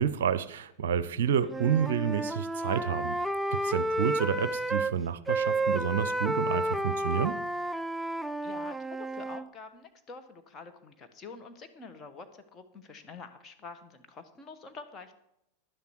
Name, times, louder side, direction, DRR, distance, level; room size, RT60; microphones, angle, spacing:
voice 1, 0.0-3.2 3.5-7.4, right 8 dB, 60° right, 15 dB, 0.6 m, -29 dB
Wind instrument woodwind instrument, 1.4-4.9 5.3-9.5, right 1 dB, 5° right, 0.3 m, -31 dB
voice 2, 8.4-15.1, left 4 dB, 25° left, 6 dB, 1.6 m, -47 dB
12.0 x 10.0 x 4.7 m, 0.77 s
figure-of-eight pair, 90°, 0 cm